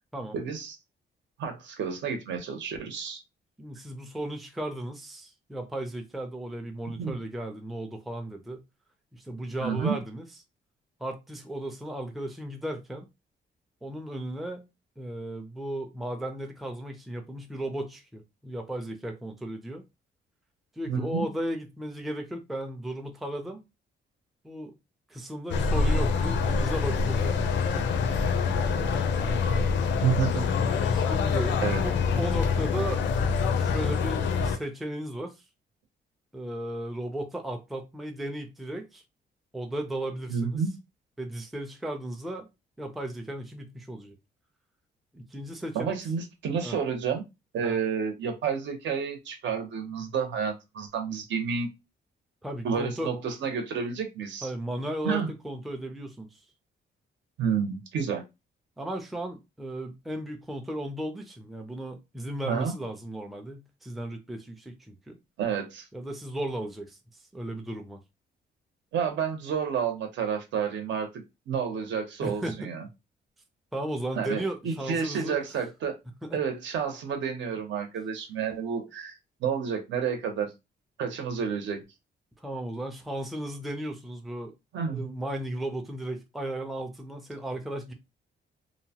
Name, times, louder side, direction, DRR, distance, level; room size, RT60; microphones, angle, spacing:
voice 1, 0.3-0.8 1.4-3.2 7.0-7.1 9.6-10.0 20.9-21.3 30.0-30.5 31.6-31.8 40.3-40.7 45.7-47.2 47.5-51.7 52.6-54.5 55.0-55.3 57.4-58.2 62.4-62.7 65.4-65.9 68.9-72.8 74.2-76.0 76.3-80.5 81.0-81.8 84.7-85.1, right 6 dB, 80° right, 0.8 m, -30 dB
voice 2, 3.6-8.6 9.1-10.2 11.0-13.1 13.8-14.7 15.0-19.8 20.8-23.6 24.4-24.7 25.1-27.9 30.9-33.0 33.6-35.4 36.3-39.0 39.5-40.6 41.2-42.5 42.8-44.2 45.1-46.0 46.6-46.8 47.6-47.8 52.4-53.1 54.4-56.4 58.8-65.2 65.9-67.0 67.3-68.0 72.2-72.7 73.7-75.4 76.2-76.4 82.4-84.5 84.9-87.9, right 1 dB, ahead, 0.4 m, -35 dB
sound 1, 25.5-34.6, left 5 dB, 75° left, 0.5 m, -25 dB
2.8 x 2.1 x 2.8 m
wide cardioid pair, 160°, 19 cm